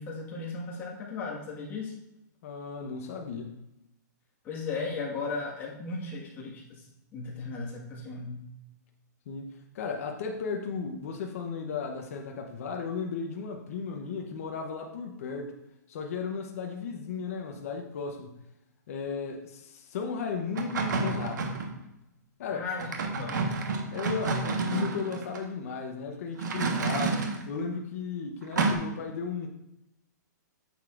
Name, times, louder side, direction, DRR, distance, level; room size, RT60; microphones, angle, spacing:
voice 1, 0.0-1.9 4.4-6.8 7.1-8.4 22.5-23.4, left 4 dB, 20° left, -3 dB, 1.6 m, -36 dB
voice 2, 2.4-3.6 9.3-15.5 15.9-18.4 18.9-21.4 22.4-22.7 23.9-29.5, left 5 dB, 50° left, 2 dB, 0.9 m, -35 dB
sound 1, 20.5-21.7 22.7-25.4 26.4-27.4 28.5-28.7, right 3 dB, 75° right, 1.3 m, -29 dB
9.2 x 6.9 x 2.5 m, 0.89 s
hypercardioid pair, 160°, 10 cm